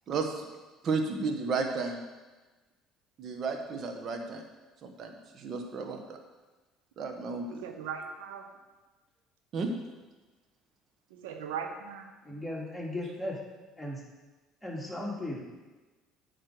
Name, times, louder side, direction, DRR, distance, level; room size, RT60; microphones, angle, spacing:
voice 1, 0.1-0.5 0.8-2.0 3.2-4.4 4.8-6.2 7.0-7.6 9.5-9.7, right 4 dB, 50° right, 4 dB, 1.3 m, -33 dB
voice 2, 7.5-8.5 11.1-12.1, right 7 dB, 85° right, 5 dB, 1.0 m, -39 dB
voice 3, 12.2-13.4 13.8-14.0 14.6-15.4, left 1 dB, 5° left, -4 dB, 2.7 m, -36 dB
8.9 x 4.8 x 6.5 m, 1.2 s
hypercardioid pair, 70°, 0 cm